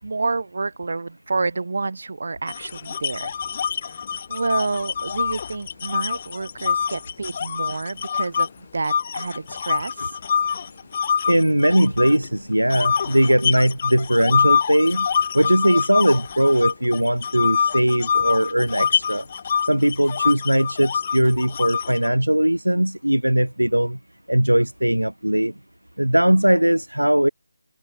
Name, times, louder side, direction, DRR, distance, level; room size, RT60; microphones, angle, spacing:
voice 1, 0.0-3.3 3.8-4.0 4.3-10.1, right 3 dB, 55° right, 4.0 m, -28 dB
sound 1, 2.5-8.5 8.9-12.3 12.7-22.1, left 7 dB, 30° left, 2.2 m, -25 dB
voice 2, 11.3-15.1 15.3-19.2 19.6-24.0 24.3-25.5 26.0-27.3, right 1 dB, 85° right, 1.3 m, -19 dB
figure-of-eight pair, 155°, 0 cm